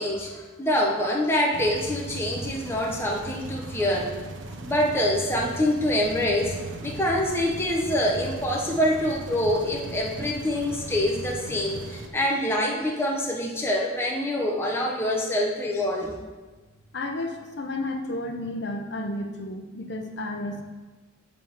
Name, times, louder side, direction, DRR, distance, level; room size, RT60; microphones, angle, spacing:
voice 1, 0.0-4.1 4.6-6.5 6.8-16.1, left 1 dB, 10° left, -2 dB, 0.7 m, -25 dB
sound 1, 1.5-12.1, right 2 dB, 70° right, 0.6 m, -38 dB
voice 2, 16.9-20.6, left 1 dB, 55° left, 4 dB, 0.7 m, -32 dB
9.2 x 3.6 x 4.5 m, 1.3 s
head